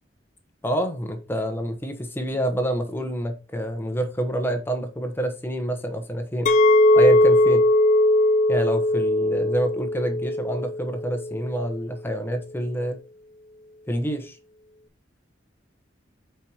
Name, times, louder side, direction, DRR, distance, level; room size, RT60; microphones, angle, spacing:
voice 1, 0.6-6.5 6.9-7.7 8.5-13.0 13.9-14.4, right 1 dB, 10° left, 0.9 m, -27 dB
Chink clink, 6.5-11.6, left 1 dB, 40° left, 0.5 m, -19 dB
8.3 x 4.6 x 2.9 m
head